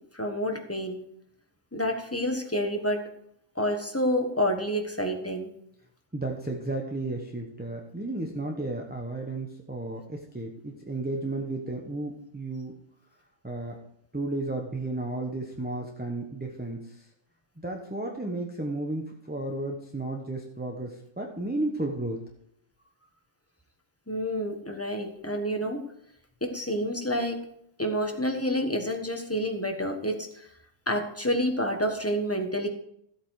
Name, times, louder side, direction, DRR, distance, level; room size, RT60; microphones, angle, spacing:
voice 1, 0.1-1.0 1.7-3.0 3.5-5.5 24.1-25.8 26.4-27.4 27.8-30.5 30.9-32.7, equal, 10° left, 4 dB, 1.3 m, -28 dB
voice 2, 6.1-12.8 13.4-13.8 14.1-17.1 17.6-22.2, right 2 dB, 10° right, 1 dB, 1.0 m, -33 dB
13.5 x 8.3 x 4.8 m, 0.72 s
omnidirectional pair, 1.3 m